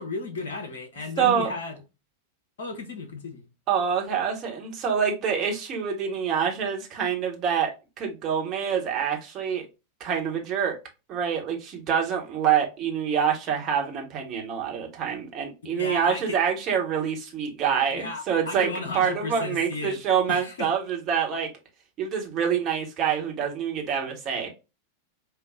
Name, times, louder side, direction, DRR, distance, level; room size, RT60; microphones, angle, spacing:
voice 1, 0.0-1.8 2.6-3.4 15.6-16.4 17.9-20.0 20.3-20.7, left 3 dB, 60° left, 0.8 m, -34 dB
voice 2, 1.2-1.5 3.7-9.6 10.0-10.7 11.1-18.7 18.9-21.5 22.0-24.5, right 7 dB, 35° right, 1.3 m, -26 dB
5.4 x 2.5 x 2.4 m
figure-of-eight pair, 90°, 0 cm